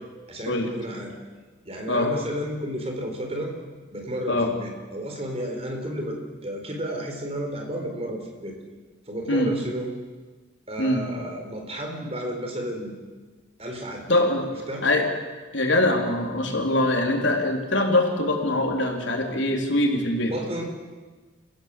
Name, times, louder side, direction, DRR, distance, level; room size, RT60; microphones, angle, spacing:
voice 1, 0.3-1.1 1.6-3.5 3.9-8.6 9.1-9.9 10.7-12.9 13.6-14.1 14.7-14.9 20.3-20.6, equal, 30° right, 2 dB, 4.3 m, -32 dB
voice 2, 14.1-14.5 14.8-15.1 15.5-20.3, left 1 dB, 75° left, 2 dB, 3.7 m, -23 dB
30.0 x 16.0 x 7.6 m, 1.4 s
head